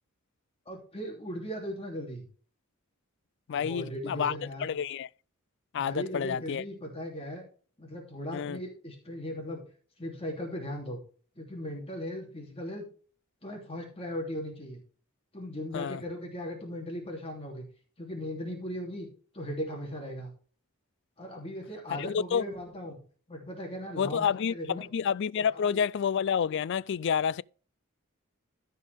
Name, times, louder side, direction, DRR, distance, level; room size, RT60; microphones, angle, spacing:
voice 1, 0.6-2.2 3.5-4.7 5.7-7.4 7.8-9.6 10.0-11.0 11.3-12.8 13.4-14.8 15.3-17.7 18.0-19.1 19.3-20.3 21.2-23.0 23.3-24.9 25.5-25.8, equal, 25° left, 3.0 m, -38 dB
voice 2, 3.5-4.3 4.6-5.1 5.7-6.6 8.3-8.6 15.7-16.0 22.0-22.4 24.0-27.4, left 7 dB, 55° left, 0.3 m, -29 dB
15.0 x 5.5 x 3.5 m
head